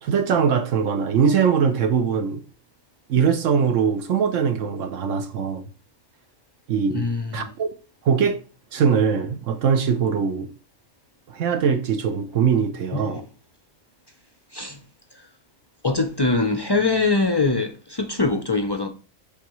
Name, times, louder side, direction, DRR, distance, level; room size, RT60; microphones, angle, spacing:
voice 1, 0.0-2.4 3.1-5.7 6.7-7.0 7.3-7.7 8.0-8.4 8.7-10.5 11.3-13.2, right 6 dB, 80° right, 1.1 m, -21 dB
voice 2, 6.9-7.5 12.9-13.2 14.5-14.8 15.8-18.9, left 3 dB, 40° left, 0.3 m, -23 dB
9.9 x 3.6 x 3.0 m
omnidirectional pair, 1.3 m